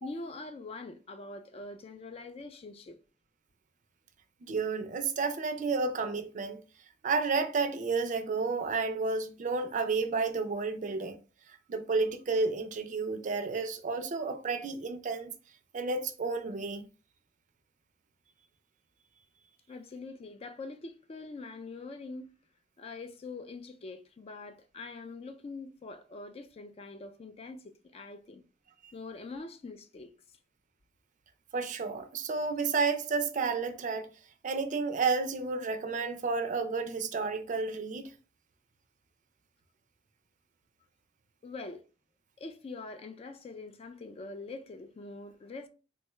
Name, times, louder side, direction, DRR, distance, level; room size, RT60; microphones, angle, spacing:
voice 1, 0.0-3.0 19.7-22.3 22.8-28.4 28.9-30.1 41.4-41.8 42.4-45.7, left 3 dB, 35° left, 0.3 m, -44 dB
voice 2, 4.5-6.6 7.0-11.1 11.7-15.3 15.7-16.8 31.5-34.1 34.4-38.1, right 4 dB, 45° right, 0.4 m, -31 dB
3.5 x 2.2 x 3.0 m
head